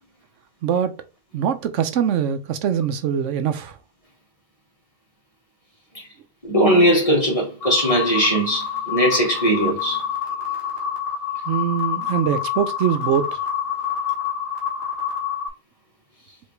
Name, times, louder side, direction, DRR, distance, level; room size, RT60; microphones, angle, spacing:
voice 1, 0.6-0.9 1.3-3.8 11.5-13.4, right 9 dB, 75° right, 0.9 m, -23 dB
voice 2, 6.4-10.0, equal, 25° left, 2.0 m, -19 dB
sound 1, 7.6-15.5, left 8 dB, 50° left, 1.5 m, -27 dB
4.8 x 3.1 x 3.2 m
omnidirectional pair, 1.3 m